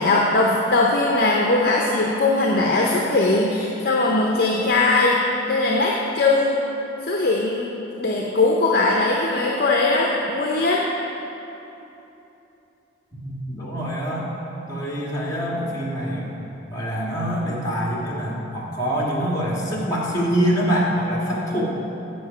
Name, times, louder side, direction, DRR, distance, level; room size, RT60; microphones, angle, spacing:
voice 1, 0.0-5.2 5.5-6.6 7.0-7.7 8.0-10.8, left 2 dB, 50° left, -2 dB, 0.6 m, -20 dB
voice 2, 13.1-14.3 14.7-16.3 16.7-21.6, equal, 20° left, -6 dB, 1.6 m, -25 dB
7.8 x 7.1 x 5.6 m, 3.0 s
head